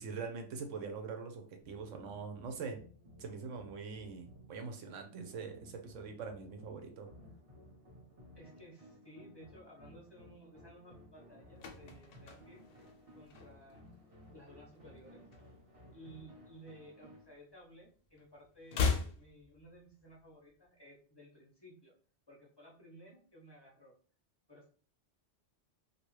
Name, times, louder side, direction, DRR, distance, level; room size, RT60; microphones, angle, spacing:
voice 1, 0.0-2.8 3.2-7.1, right 5 dB, 80° right, 5 dB, 1.0 m, -43 dB
sound 1, 1.6-17.3, left 1 dB, 35° right, 0.6 m, -58 dB
voice 2, 8.3-14.0 14.3-15.2 15.9-21.9 22.3-23.9 24.5-24.7, equal, 30° left, -3 dB, 0.5 m, -56 dB
sound 2, 11.2-13.9 14.2-14.5 14.8-16.2 16.5-17.9 18.1-20.2 20.5-20.6, left 5 dB, 65° left, 0.8 m, -38 dB
2.7 x 2.3 x 3.0 m, 0.41 s
omnidirectional pair, 1.3 m